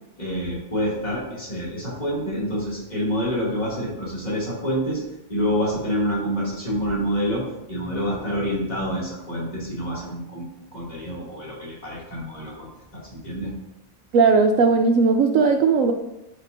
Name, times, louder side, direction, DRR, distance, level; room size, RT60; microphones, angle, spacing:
voice 1, 0.2-5.0 5.3-13.5, equal, 30° left, -6 dB, 2.8 m, -27 dB
voice 2, 14.1-15.9, right 4 dB, 70° right, 6 dB, 0.9 m, -17 dB
12.0 x 5.3 x 2.7 m, 0.89 s
omnidirectional pair, 1.5 m